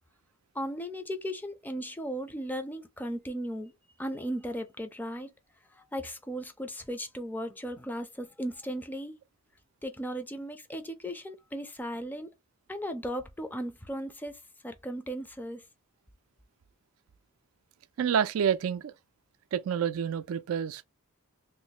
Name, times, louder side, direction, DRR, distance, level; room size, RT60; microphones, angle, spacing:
voice 1, 0.5-3.7 4.0-5.3 5.8-9.2 9.8-12.3 12.7-15.6, equal, 10° left, 0.4 m, -36 dB
voice 2, 18.0-18.9 19.5-20.8, right 8 dB, 80° right, 0.3 m, -28 dB
3.1 x 2.0 x 4.0 m
head